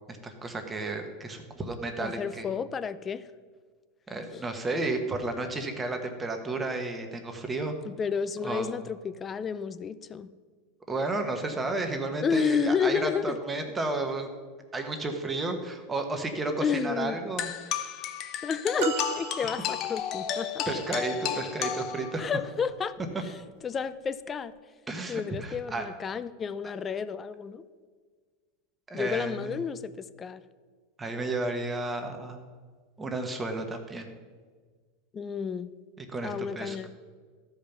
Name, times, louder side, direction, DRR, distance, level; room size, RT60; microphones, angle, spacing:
voice 1, 0.1-2.5 4.1-7.8 8.4-8.7 10.9-14.3 14.7-17.5 19.4-19.5 20.6-22.3 24.9-25.8 26.6-26.7 28.9-29.6 31.0-32.4 33.0-34.1 36.0-36.9, right 2 dB, 15° right, 5 dB, 1.3 m, -32 dB
voice 2, 2.0-3.2 4.3-4.4 7.8-10.3 12.2-13.4 16.6-17.2 18.4-20.7 22.2-23.0 23.2-23.4 23.6-24.5 25.1-27.6 28.9-30.4 35.1-35.7 36.2-36.9, left 6 dB, 25° left, 15 dB, 0.5 m, -31 dB
sound 1, 17.4-22.4, left 9 dB, 45° left, 0.8 m, -33 dB
sound 2, 18.8-20.2 22.6-22.8 24.1-24.2, right 11 dB, 65° right, 0.5 m, -35 dB
13.0 x 5.3 x 5.9 m, 1.5 s
hypercardioid pair, 110°, 0 cm